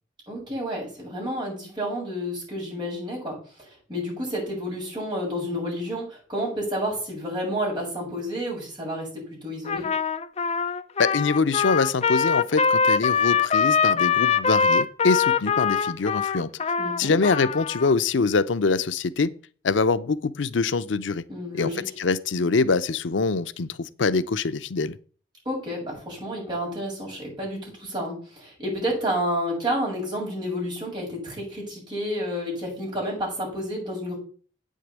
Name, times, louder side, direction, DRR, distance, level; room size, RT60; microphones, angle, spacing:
voice 1, 0.3-9.9 16.8-17.1 21.3-21.8 25.5-34.2, equal, 25° right, 7.2 m, -30 dB
Trumpet, 9.7-18.0, left 6 dB, 35° left, 0.5 m, -23 dB
voice 2, 11.0-16.5 17.0-19.3 19.6-21.2 21.5-25.0, left 4 dB, 90° left, 0.6 m, -24 dB
8.8 x 6.5 x 8.3 m
head